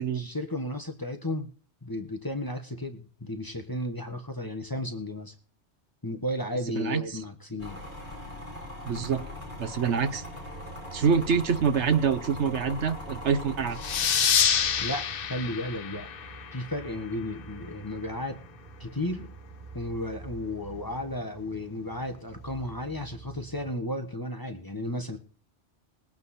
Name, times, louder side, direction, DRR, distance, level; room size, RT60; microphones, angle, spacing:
voice 1, 0.1-1.5 1.8-5.3 6.0-7.8 14.8-16.1 16.5-18.4 18.8-19.3 19.7-25.2, left 1 dB, 20° left, 6 dB, 1.1 m, -34 dB
voice 2, 6.7-7.0 8.9-9.2 9.6-10.2 10.9-13.8, right 6 dB, 70° right, 11 dB, 1.3 m, -26 dB
sound 1, 7.6-15.1, left 1 dB, 10° right, 4.3 m, -41 dB
sound 2, 8.8-23.7, right 4 dB, 50° right, 3.6 m, -48 dB
sound 3, 13.8-17.1, left 8 dB, 55° left, 0.8 m, -27 dB
20.0 x 8.4 x 4.2 m, 0.42 s
omnidirectional pair, 1.2 m